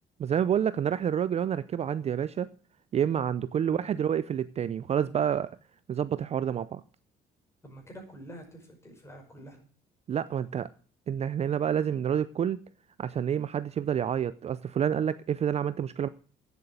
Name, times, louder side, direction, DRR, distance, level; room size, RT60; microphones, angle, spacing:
voice 1, 0.2-2.5 2.9-5.5 5.9-6.8 10.1-10.7 11.1-12.6 13.0-16.1, right 9 dB, 40° right, 0.5 m, -28 dB
voice 2, 7.6-9.6, right 1 dB, 15° left, 5.6 m, -47 dB
9.4 x 8.2 x 8.8 m
cardioid pair, 110°, 17 cm